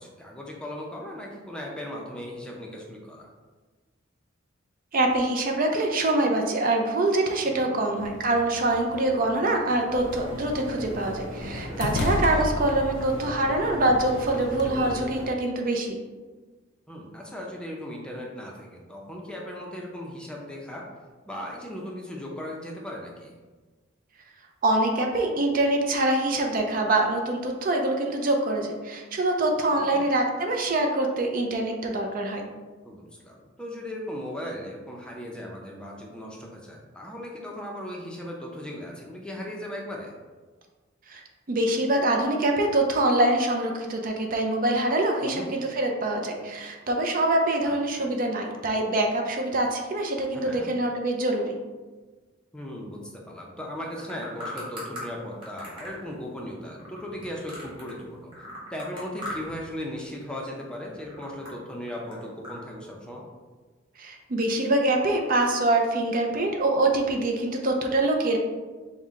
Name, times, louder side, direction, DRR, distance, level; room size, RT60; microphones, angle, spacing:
voice 1, 0.0-3.3 7.5-7.7 12.2-12.4 16.9-20.8 21.3-23.3 29.7-30.0 32.8-40.1 45.2-45.5 47.7-48.1 50.4-50.7 52.5-58.4 58.7-63.2, left 1 dB, 5° left, -2 dB, 0.5 m, -37 dB
voice 2, 4.9-16.0 24.6-32.4 41.1-41.2 41.5-51.5 64.0-68.4, right 2 dB, 45° right, 3 dB, 0.4 m, -24 dB
sound 1, 8.0-14.7, left 1 dB, 60° left, 0.3 m, -35 dB
sound 2, 9.9-15.2, equal, 85° right, 1.4 m, -38 dB
sound 3, 53.8-55.1 55.4-58.0 58.3-59.7 59.9-60.4 60.8-62.6, equal, 25° right, 1.5 m, -39 dB
5.4 x 2.1 x 3.6 m, 1.3 s
head